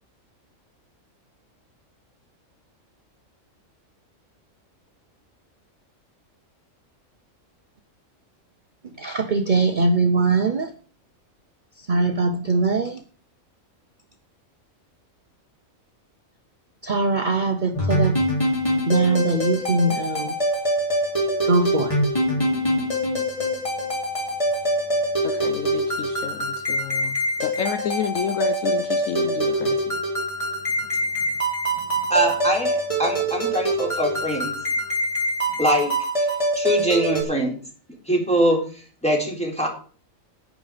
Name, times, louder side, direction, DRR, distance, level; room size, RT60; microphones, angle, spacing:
voice 1, 9.0-10.7 11.9-13.0 16.8-18.2 18.9-20.3 21.5-22.0, right 3 dB, 40° right, 0.9 m, -21 dB
sound 1, 17.7-37.2, equal, 25° left, 3.2 m, -24 dB
voice 2, 25.2-27.2 27.4-30.0, left 8 dB, 75° left, 1.1 m, -30 dB
voice 3, 32.1-34.5 35.6-35.9 36.6-37.6 38.1-38.6 39.0-39.7, equal, 5° left, 4.1 m, -22 dB
11.0 x 9.7 x 5.0 m
omnidirectional pair, 1.4 m